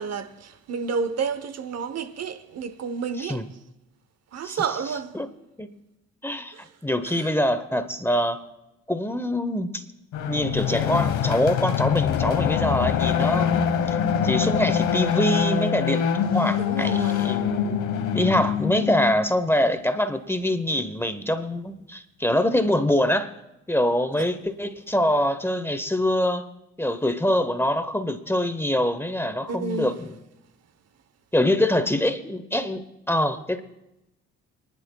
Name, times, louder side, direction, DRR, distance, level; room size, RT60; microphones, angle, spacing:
voice 1, 0.0-3.5 4.3-5.2 6.5-6.7 7.0-7.3 16.6-17.3 24.2-24.3 29.5-30.0, right 5 dB, 55° right, 0.9 m, -30 dB
voice 2, 6.2-8.4 8.9-9.8 10.3-13.7 14.2-16.1 16.3-17.8 18.1-23.3 23.7-26.5 26.8-30.1 31.3-33.6, left 1 dB, 10° left, 0.9 m, -24 dB
sound 1, 10.1-19.3, left 8 dB, 80° left, 1.2 m, -24 dB
26.5 x 11.0 x 2.3 m
cardioid pair, 90°, 30 cm